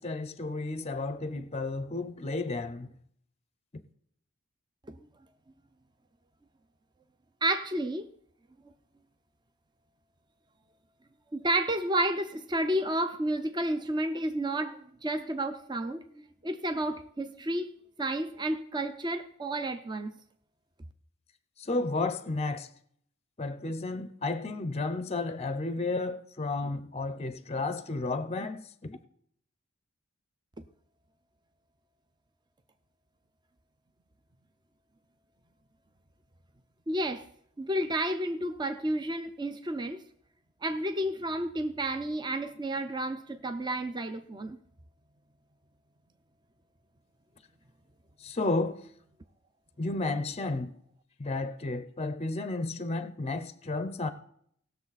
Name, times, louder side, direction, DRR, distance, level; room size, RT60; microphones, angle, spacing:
voice 1, 0.0-2.9 3.7-3.8 21.6-22.7 23.4-29.0 48.2-48.8 49.8-50.7 51.2-54.1, left 3 dB, 30° left, 0.6 m, -32 dB
voice 2, 7.4-8.1 11.3-17.7 18.0-20.1 30.6-30.7 36.9-37.3 37.6-40.0 40.6-44.6, right 1 dB, 20° right, 0.5 m, -31 dB
18.5 x 6.8 x 4.1 m
head